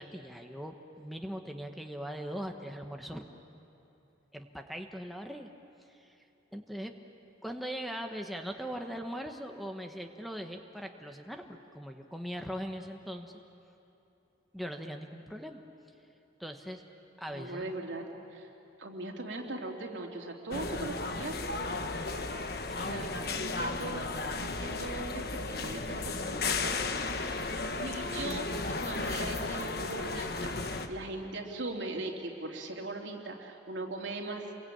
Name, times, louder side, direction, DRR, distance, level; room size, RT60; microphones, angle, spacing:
voice 1, 0.0-3.2 4.3-5.5 5.9-6.1 6.5-6.9 7.4-13.3 14.5-15.6 16.4-16.8 17.2-17.7 22.7-23.7, equal, ahead, 4 dB, 1.2 m, -40 dB
voice 2, 17.3-18.0 18.3-18.5 18.8-21.7 22.7-26.7 27.4-34.5, right 2 dB, 90° right, 0 dB, 3.1 m, -40 dB
sound 1, 20.5-30.9, left 3 dB, 55° left, 1.3 m, -34 dB
28.5 x 22.5 x 8.8 m, 3.0 s
head